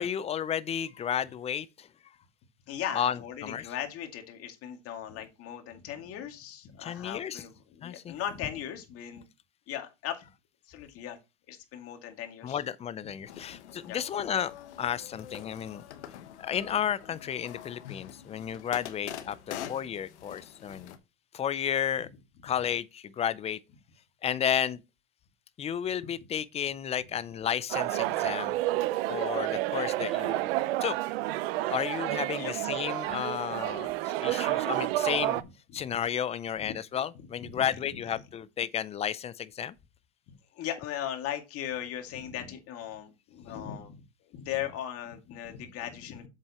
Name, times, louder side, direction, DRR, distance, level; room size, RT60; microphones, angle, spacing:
voice 1, 0.0-1.9 2.9-3.6 6.8-7.4 7.8-8.2 12.4-14.5 14.8-15.8 16.4-20.9 21.3-22.1 22.4-23.6 24.2-24.8 25.6-28.6 29.1-30.5 30.8-31.0 31.7-33.9 34.2-35.4 35.7-39.8, left 9 dB, 20° left, 0.5 m, -32 dB
voice 2, 2.7-9.2 9.7-10.3 10.7-11.2 11.5-12.6 13.8-14.0 26.0-26.1 32.4-32.5 35.3-35.4 35.7-35.9 36.6-36.7 37.1-38.0 40.5-44.0 44.2-46.3, left 10 dB, 40° left, 2.2 m, -38 dB
sound 1, 13.3-21.0, left 11 dB, 75° left, 1.2 m, -45 dB
sound 2, 27.7-35.4, right 16 dB, 60° right, 0.7 m, -30 dB
7.8 x 7.5 x 3.0 m
hypercardioid pair, 115°, 34 cm